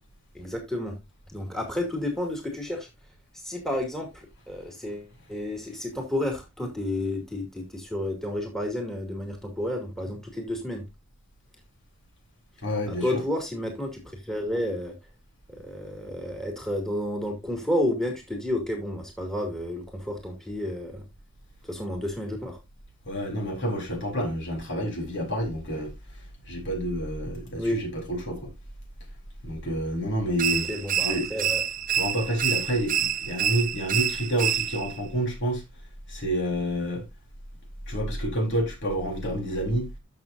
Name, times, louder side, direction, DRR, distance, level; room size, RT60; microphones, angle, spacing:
voice 1, 0.3-1.0 1.3-2.9 3.3-10.8 12.9-15.0 15.5-21.0 21.6-22.6 27.6-27.8 30.7-31.6, left 1 dB, ahead, 2.4 m, -31 dB
voice 2, 12.6-13.2 23.1-25.9 26.5-28.5 29.4-30.7 31.0-31.3 31.9-35.6 36.1-37.0 37.9-39.9, equal, 55° left, 3.7 m, -28 dB
sound 1, 30.4-35.0, right 9 dB, 35° right, 0.6 m, -27 dB
13.5 x 6.5 x 2.6 m
head